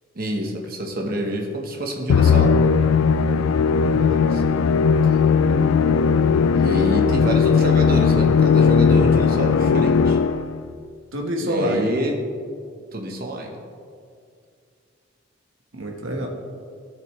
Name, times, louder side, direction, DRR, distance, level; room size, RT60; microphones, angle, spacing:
voice 1, 0.1-2.6 4.3-4.4 6.5-10.2 11.4-12.1 12.9-13.5, equal, 45° right, 2 dB, 1.1 m, -27 dB
Musical instrument, 2.1-10.6, left 6 dB, 90° left, 0.3 m, -17 dB
voice 2, 3.7-4.4 11.1-12.0 15.7-16.3, right 1 dB, 70° right, 1 dB, 1.3 m, -27 dB
14.0 x 6.6 x 3.2 m, 2.2 s
head